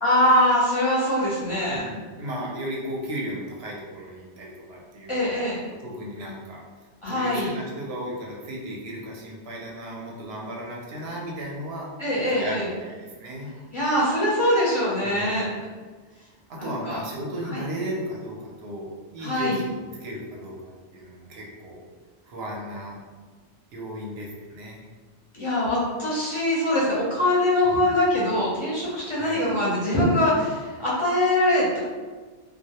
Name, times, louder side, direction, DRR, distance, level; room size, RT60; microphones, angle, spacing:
voice 1, 0.0-1.8 5.1-5.6 7.0-7.5 12.0-12.7 13.7-15.5 16.6-17.0 17.5-17.6 19.2-19.6 25.3-31.8, left 1 dB, 35° left, -8 dB, 0.6 m, -23 dB
voice 2, 1.7-5.5 5.8-6.6 7.1-11.9 12.1-13.5 15.0-15.5 16.5-21.8 22.2-23.0 23.7-24.8 27.7-27.9 29.1-29.4, right 1 dB, 65° right, -2 dB, 0.7 m, -35 dB
2.2 x 2.0 x 2.8 m, 1.4 s
omnidirectional pair, 1.2 m